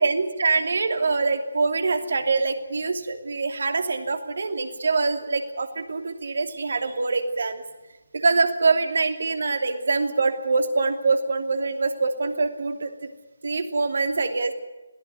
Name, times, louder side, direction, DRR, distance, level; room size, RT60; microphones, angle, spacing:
voice 1, 0.0-7.6 8.1-12.9 13.4-14.5, right 3 dB, 55° right, 7 dB, 2.8 m, -24 dB
21.5 x 17.5 x 9.5 m, 1.1 s
figure-of-eight pair, 145°, 0 cm